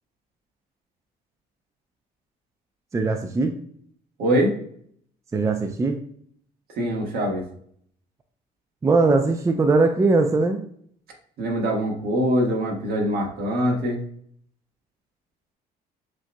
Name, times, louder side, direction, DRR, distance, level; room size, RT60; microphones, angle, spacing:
voice 1, 2.9-3.5 5.3-6.0 8.8-10.6, right 3 dB, 20° right, 5 dB, 0.4 m, -20 dB
voice 2, 4.2-4.6 6.8-7.4 11.4-14.0, equal, 65° right, 0 dB, 1.5 m, -23 dB
7.4 x 2.7 x 2.2 m, 0.62 s
cardioid pair, 110°, 17 cm